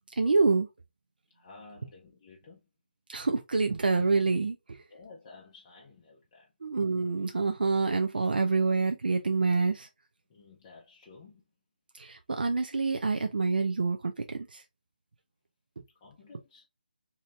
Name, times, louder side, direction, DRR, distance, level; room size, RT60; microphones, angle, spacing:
voice 1, 0.2-0.7 3.1-4.8 6.6-9.9 11.9-14.6, right 4 dB, 75° right, 0.4 m, -27 dB
voice 2, 1.3-2.6 4.9-6.5 10.3-11.4 16.0-16.7, left 4 dB, 25° left, 0.5 m, -53 dB
2.7 x 2.6 x 3.1 m
figure-of-eight pair, 160°, 5 cm